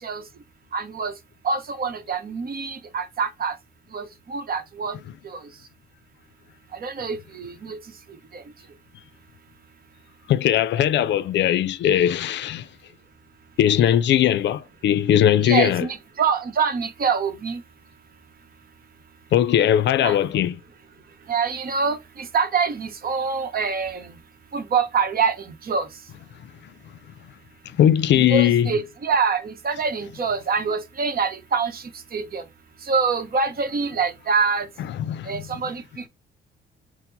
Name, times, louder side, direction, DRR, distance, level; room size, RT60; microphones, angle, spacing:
voice 1, 0.7-1.1 1.4-3.6 3.9-5.0 5.2-5.4 6.7-7.8 8.3-8.4 15.4-17.6 20.0-20.2 21.3-24.1 24.5-25.9 28.1-32.4 32.8-34.7 35.3-36.1, right 5 dB, 50° right, 0.9 m, -25 dB
voice 2, 10.3-12.7 13.6-15.9 19.3-20.6 27.8-28.8 34.9-35.5, left 11 dB, 65° left, 0.4 m, -19 dB
4.3 x 2.0 x 3.9 m
cardioid pair, 90°, 20 cm